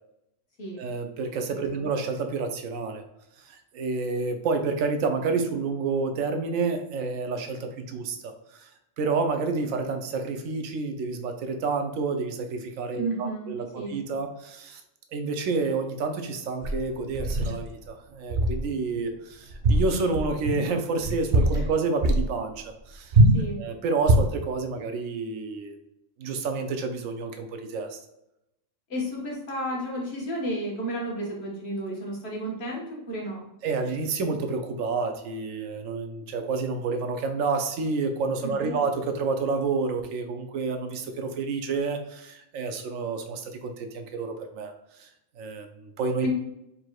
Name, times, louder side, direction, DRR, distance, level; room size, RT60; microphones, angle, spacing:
voice 1, 0.8-3.0 3.4-8.7 9.0-14.8 15.1-23.1 23.6-25.8 26.2-28.0 33.6-44.7 45.0-45.1 45.4-46.3, right 4 dB, 90° right, 6 dB, 1.1 m, -29 dB
voice 2, 1.5-1.9 13.0-14.0 21.5-21.6 23.3-23.6 28.9-33.5 38.4-38.7 46.2-46.3, right 1 dB, 55° left, -3 dB, 1.5 m, -32 dB
sound 1, 16.6-17.6 18.3-18.7 18.9-19.1 19.5-20.6 21.0-21.7 22.0-22.3 23.1-23.5 24.0-24.4, right 1 dB, 60° right, 0.7 m, -22 dB
4.6 x 4.0 x 2.3 m, 0.86 s
omnidirectional pair, 1.3 m